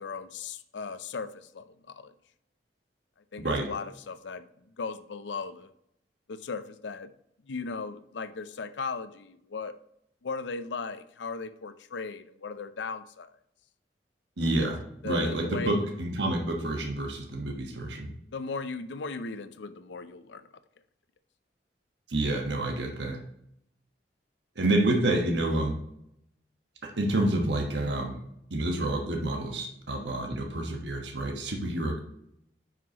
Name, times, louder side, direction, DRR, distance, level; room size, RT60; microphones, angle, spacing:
voice 1, 0.0-2.1 3.3-4.4 4.8-5.7 6.3-7.1 7.5-9.8 10.2-13.3 15.0-15.9 18.3-20.4, left 4 dB, 85° left, 13 dB, 0.5 m, -37 dB
voice 2, 14.4-14.8 15.0-18.1 22.1-23.2 24.6-25.8 26.8-28.2 28.5-32.0, right 1 dB, 80° right, 2 dB, 1.4 m, -28 dB
9.4 x 5.8 x 2.9 m, 0.76 s
head